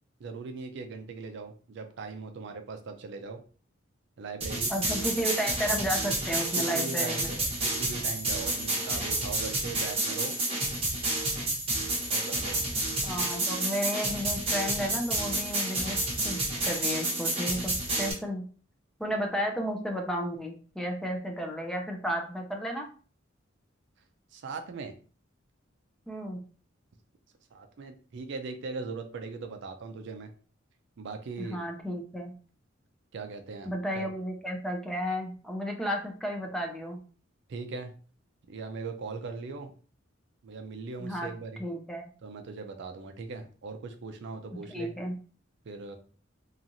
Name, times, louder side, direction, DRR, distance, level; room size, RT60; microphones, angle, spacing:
voice 1, 0.2-3.4 4.2-4.7 6.5-10.4 12.1-12.6 24.3-25.0 27.5-30.3 31.0-31.6 33.1-34.1 37.5-37.9 38.5-39.7 40.4-41.6 42.2-44.9 45.6-46.0, right 4 dB, 60° right, 6 dB, 0.4 m, -39 dB
sound 1, 4.4-18.1, right 2 dB, 30° right, 1.0 m, -30 dB
voice 2, 4.7-7.3 13.0-16.0 16.2-18.4 19.0-22.8 26.1-26.4 31.4-32.3 33.7-37.0 41.0-41.3 41.6-42.1 44.7-45.1, equal, 5° left, 2 dB, 0.4 m, -33 dB
2.9 x 2.4 x 2.6 m, 0.41 s
head